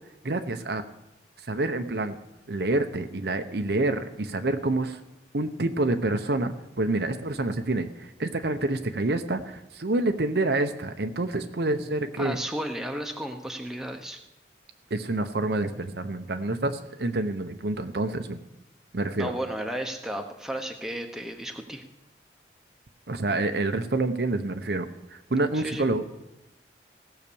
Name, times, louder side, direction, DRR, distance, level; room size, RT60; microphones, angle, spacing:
voice 1, 0.2-0.8 1.5-2.2 2.5-5.0 5.3-12.4 14.9-18.4 18.9-19.3 23.1-24.9 25.1-26.0, right 2 dB, 60° right, 8 dB, 0.8 m, -27 dB
voice 2, 12.2-14.2 19.2-21.8 25.5-25.8, equal, 5° right, 3 dB, 1.0 m, -33 dB
16.5 x 5.9 x 7.0 m, 0.96 s
head